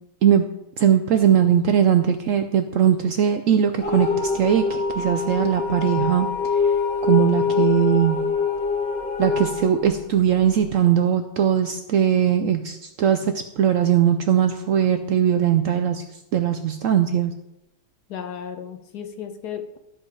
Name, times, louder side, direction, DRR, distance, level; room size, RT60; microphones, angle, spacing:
voice 1, 0.8-6.3 7.0-8.2 9.2-16.0 16.3-17.3, right 9 dB, 70° right, 8 dB, 0.8 m, -20 dB
sound 1, 3.8-10.7, left 5 dB, 50° left, 1.6 m, -24 dB
voice 2, 18.1-19.8, left 8 dB, 75° left, 8 dB, 1.3 m, -34 dB
12.5 x 5.3 x 4.7 m, 0.87 s
omnidirectional pair, 1.8 m